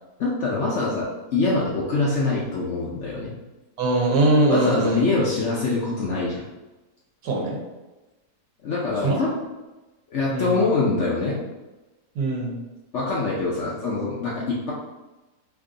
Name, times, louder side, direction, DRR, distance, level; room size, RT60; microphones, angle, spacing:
voice 1, 0.2-3.3 4.5-6.4 8.6-9.3 10.1-11.4 12.9-14.7, left 3 dB, 65° left, -5 dB, 0.7 m, -24 dB
voice 2, 3.8-5.0 7.2-7.6 9.0-9.2 10.3-10.6 12.1-12.6, right 2 dB, 75° right, -1 dB, 1.3 m, -21 dB
3.0 x 2.6 x 3.7 m, 1.1 s
omnidirectional pair, 1.7 m